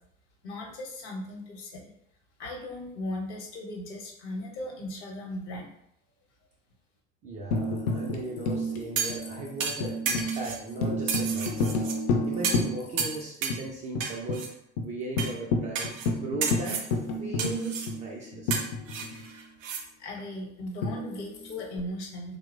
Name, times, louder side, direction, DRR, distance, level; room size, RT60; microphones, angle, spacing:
voice 1, 0.4-1.9 2.4-5.7 20.0-22.4, left 1 dB, 60° left, 0 dB, 0.8 m, -37 dB
voice 2, 7.2-11.8 12.3-14.5 14.8-18.6, right 2 dB, 20° right, -2 dB, 0.3 m, -37 dB
Tambourine, 7.5-13.2 13.5-13.6 13.9-14.4 14.8-14.9 15.2-19.3 20.8-21.8, left 2 dB, 45° left, 0.5 m, -31 dB
sound 1, 9.0-9.3 9.6-10.6 11.1-12.0 12.4-12.7 13.0-13.6 14.0-14.5 15.2-15.3 15.8-16.1 16.4-16.9 17.4-17.9 18.5-19.8 20.2-20.3, right 6 dB, 80° right, 0.5 m, -32 dB
2.9 x 2.0 x 2.4 m, 0.74 s
figure-of-eight pair, 70°, 39 cm